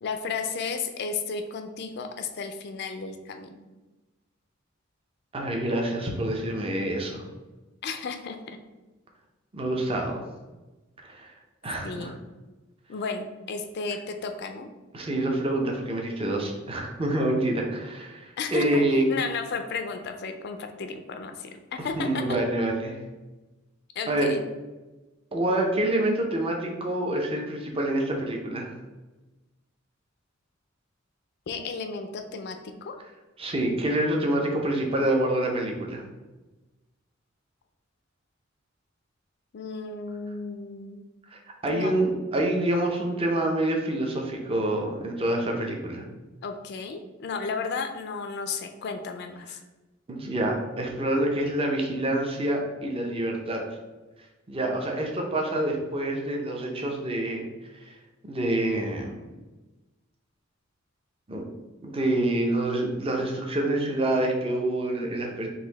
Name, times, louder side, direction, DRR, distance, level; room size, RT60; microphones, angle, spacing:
voice 1, 0.0-3.6 7.8-8.6 11.8-12.2 12.9-14.7 18.4-22.2 24.0-24.4 31.5-32.9 39.5-41.1 41.7-42.0 46.4-49.6, left 4 dB, 55° left, 6 dB, 0.4 m, -33 dB
voice 2, 5.3-7.3 9.5-10.2 11.0-11.3 11.6-12.1 14.9-19.0 21.8-23.0 24.1-24.3 25.3-28.7 33.4-36.0 41.3-46.0 50.1-53.6 54.5-57.5 57.9-58.0 58.2-59.2 61.3-61.4 61.8-65.5, right 1 dB, 30° right, 1 dB, 0.6 m, -27 dB
4.0 x 2.6 x 3.9 m, 1.1 s
head